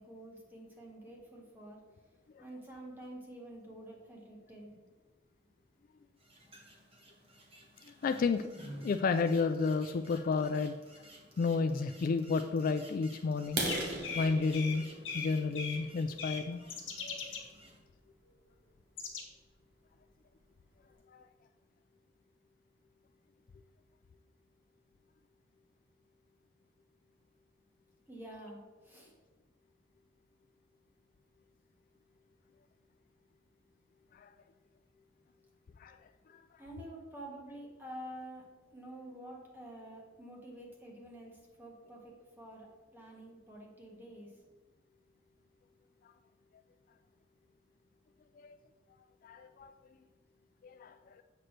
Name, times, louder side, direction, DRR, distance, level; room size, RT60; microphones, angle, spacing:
voice 1, 0.0-1.8 2.4-4.8 28.1-29.1 36.6-38.5 38.7-44.3, right 1 dB, 10° right, -2 dB, 1.5 m, -49 dB
sound 1, 6.2-17.8, right 1 dB, 30° right, 1.2 m, -54 dB
voice 2, 8.0-8.4 8.8-10.8 11.4-13.6 14.2-14.8 15.1-16.7 21.1-21.2 34.1-34.3 35.8-36.0 36.3-36.4 48.4-48.6 49.2-49.7 50.6-51.2, left 4 dB, 45° left, 8 dB, 0.3 m, -31 dB
sound 2, 13.4-17.2 17.7-17.9 18.4-18.5 18.9-19.1 19.4-19.5 19.9-20.0 20.3-20.8, right 2 dB, 60° right, 1.4 m, -39 dB
sound 3, 13.7-14.8 15.0-15.3 15.5-15.8 16.2-16.4 16.7-17.4 19.0-19.2, left 5 dB, 80° left, 1.3 m, -39 dB
7.8 x 5.9 x 3.2 m, 1.3 s
head